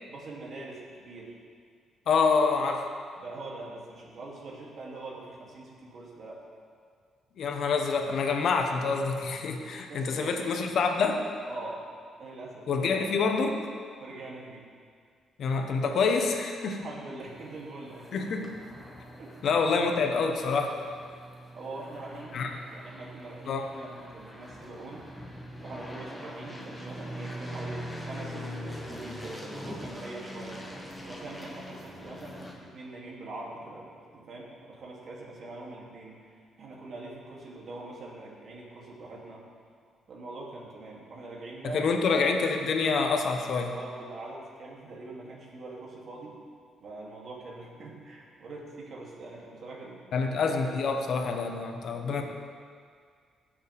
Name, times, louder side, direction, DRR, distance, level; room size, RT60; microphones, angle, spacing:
voice 1, 0.1-1.3 3.2-6.4 9.9-10.5 11.4-11.8 12.2-12.9 14.0-14.7 16.7-18.3 19.2-19.3 21.5-22.4 22.7-25.1 25.6-30.7 31.0-39.4 40.1-41.9 43.7-46.4 46.8-50.0 50.6-50.8, right 2 dB, 55° right, -4 dB, 2.9 m, -43 dB
voice 2, 2.1-2.8 7.4-11.2 12.7-13.6 15.4-16.8 18.1-18.5 19.4-20.8 22.3-22.5 23.5-23.6 41.7-43.7 50.1-52.2, left 4 dB, 65° left, 4 dB, 1.2 m, -26 dB
sound 1, 17.2-32.5, equal, 10° left, 1.8 m, -42 dB
17.0 x 7.4 x 3.6 m, 2.1 s
cardioid pair, 90°, 0 cm